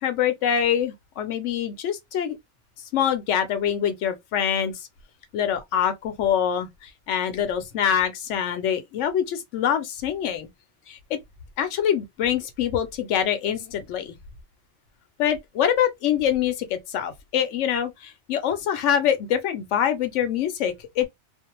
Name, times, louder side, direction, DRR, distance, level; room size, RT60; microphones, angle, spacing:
voice 1, 0.0-2.4 2.9-4.9 5.3-10.5 10.9-11.2 11.6-14.2 15.2-21.1, left 9 dB, 85° left, 0.9 m, -25 dB
2.5 x 2.0 x 2.9 m
omnidirectional pair, 1.2 m